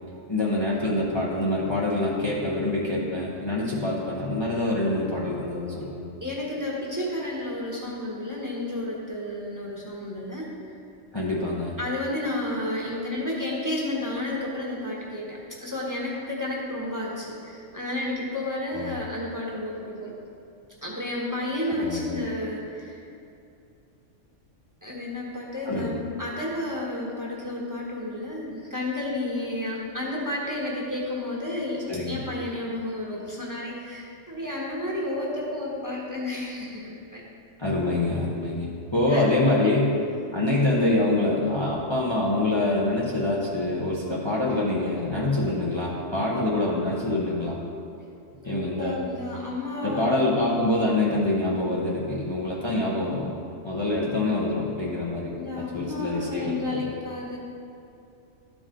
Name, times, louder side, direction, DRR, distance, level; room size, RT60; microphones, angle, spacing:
voice 1, 0.3-6.1 11.1-11.7 18.7-18.9 21.7-22.1 25.7-25.9 31.9-32.2 37.6-39.9 40.3-47.6 48.4-49.0 49.8-53.3 53.6-56.9, left 2 dB, 25° left, -5 dB, 0.8 m, -25 dB
voice 2, 6.2-10.5 11.8-20.1 20.8-23.0 24.8-37.2 39.1-40.0 48.4-50.3 55.4-57.4, left 1 dB, 15° right, -4 dB, 1.2 m, -31 dB
12.5 x 4.9 x 3.8 m, 2.6 s
omnidirectional pair, 1.3 m